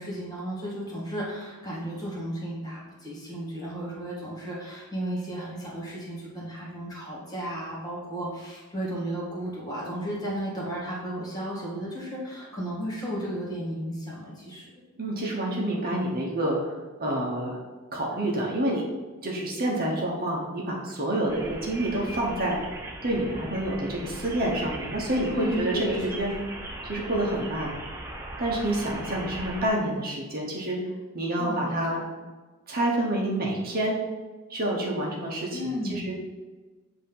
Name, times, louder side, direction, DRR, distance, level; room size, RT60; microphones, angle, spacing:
voice 1, 0.0-14.7 25.3-26.0 31.4-31.8 35.5-36.1, equal, 20° left, -6 dB, 2.0 m, -34 dB
voice 2, 15.0-17.6 17.9-18.9 19.2-22.6 23.0-26.3 26.8-27.7 28.4-30.8 31.1-32.0 32.7-34.0 34.5-36.1, right 1 dB, 45° right, -2 dB, 1.1 m, -28 dB
sound 1, 21.3-29.7, right 1 dB, 15° right, 0.7 m, -39 dB
8.1 x 2.9 x 5.5 m, 1.3 s
head